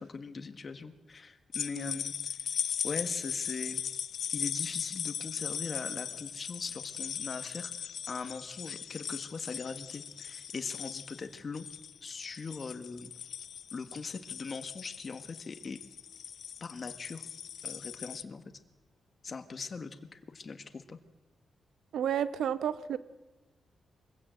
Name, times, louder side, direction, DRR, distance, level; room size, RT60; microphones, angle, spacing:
voice 1, 0.0-2.4 2.8-3.8 4.3-11.7 12.0-13.1 13.7-15.8 16.6-17.3 17.6-18.4 19.2-21.0, left 4 dB, 40° left, 9 dB, 1.6 m, -40 dB
sound 1, 1.5-18.2, left 8 dB, 75° left, 0.6 m, -39 dB
voice 2, 21.9-23.0, right 9 dB, 85° right, 13 dB, 1.0 m, -31 dB
23.5 x 16.0 x 7.7 m, 1.1 s
cardioid pair, 100°, 0 cm